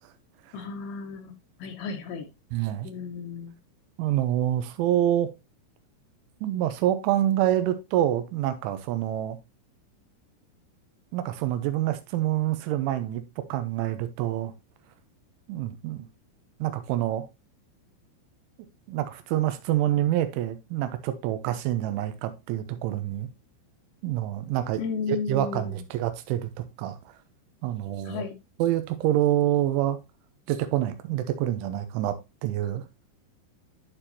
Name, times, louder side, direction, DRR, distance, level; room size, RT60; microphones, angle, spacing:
voice 1, 0.5-1.3 1.6-2.3 2.8-3.5 24.8-25.8 28.0-28.3, left 5 dB, 75° left, 2.9 m, -34 dB
voice 2, 2.5-2.9 4.0-5.3 6.4-9.4 11.1-14.5 15.5-16.1 16.6-17.2 18.9-23.3 24.0-24.8 25.3-26.5 26.8-27.0 27.6-28.2 28.6-30.0 30.5-32.8, right 12 dB, 90° right, 3.2 m, -26 dB
11.5 x 4.5 x 2.8 m
omnidirectional pair, 5.5 m